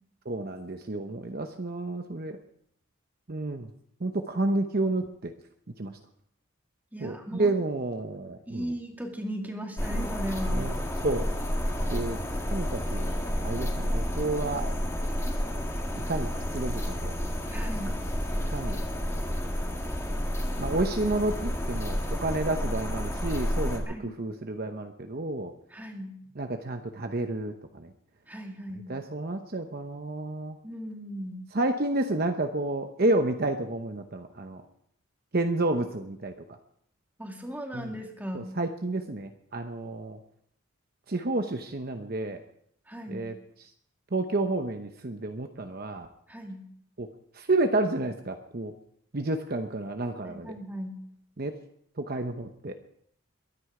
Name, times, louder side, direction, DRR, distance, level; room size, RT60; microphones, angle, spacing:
voice 1, 0.3-2.4 3.3-3.7 4.0-5.3 5.8-6.0 7.0-8.7 10.5-10.7 11.0-11.3 11.9-12.2 12.5-13.1 13.4-14.7 16.1-17.1 18.5-18.8 20.6-25.5 26.4-27.9 28.9-30.6 31.5-34.6 35.3-36.6 37.7-37.9 38.3-40.2 41.1-42.4 43.1-43.3 44.1-46.1 47.0-47.1 47.3-48.7 49.1-50.5 51.4-51.5 52.0-52.8, right 2 dB, 45° right, 6 dB, 0.8 m, -30 dB
voice 2, 6.9-7.5 8.5-10.7 17.5-18.0 23.9-24.1 25.7-26.1 28.3-28.9 30.6-31.5 37.2-38.5 42.9-43.3 46.3-46.6 50.2-51.0, equal, 10° right, 2 dB, 2.1 m, -37 dB
sound 1, 9.8-23.8, equal, 15° left, 1.8 m, -30 dB
22.5 x 9.8 x 4.9 m, 0.69 s
head